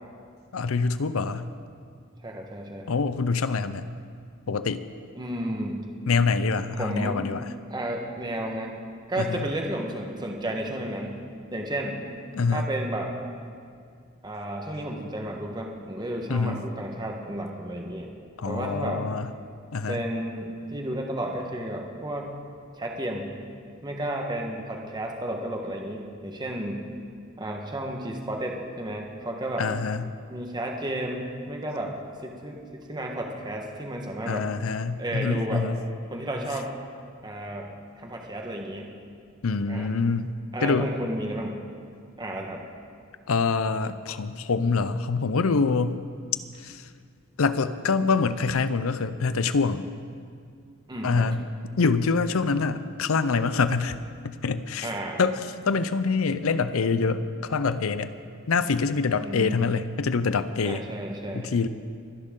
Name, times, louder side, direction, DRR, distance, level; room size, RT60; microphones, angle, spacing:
voice 1, 0.5-1.5 2.9-3.9 4.5-4.8 6.1-7.4 9.2-9.4 12.3-12.7 16.3-16.6 18.4-19.3 19.7-20.0 29.6-30.1 34.3-35.8 39.4-40.3 40.6-40.9 43.3-46.0 46.6-46.8 47.4-49.9 51.0-51.5 51.8-54.0 54.2-54.9 55.2-55.4 55.7-58.1 58.5-60.8 61.3-61.7, left 4 dB, 85° left, 13 dB, 0.6 m, -25 dB
voice 2, 2.2-2.9 5.1-5.9 6.8-7.2 7.7-8.7 9.1-11.2 11.5-12.0 12.5-13.1 14.2-18.1 18.4-19.0 19.9-22.3 22.8-23.3 23.8-26.9 27.4-29.7 30.3-32.0 32.2-34.5 35.0-35.7 36.1-36.7 37.2-37.7 38.0-38.9 39.7-39.9 40.5-41.6 42.2-42.6 50.9-51.3 54.8-55.2 59.2-59.6 60.6-61.5, right 1 dB, 20° right, 1 dB, 1.3 m, -32 dB
26.5 x 10.5 x 3.8 m, 2.2 s
head